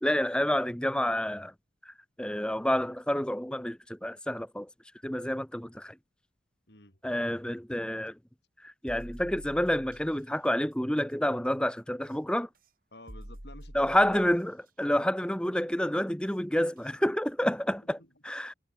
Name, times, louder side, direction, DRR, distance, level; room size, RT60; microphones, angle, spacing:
voice 1, 0.0-1.5 1.8-4.7 5.0-6.0 7.0-8.2 8.6-12.5 13.7-18.5, equal, 5° left, 1.0 m, -29 dB
voice 2, 6.7-7.0 11.9-12.0 12.9-14.2 17.8-18.1, left 1 dB, 60° left, 7.5 m, -51 dB
sound 1, 8.9-10.2 12.0-12.1 13.1-14.4 16.2-16.3 16.8-16.9, equal, 50° right, 4.1 m, -46 dB
head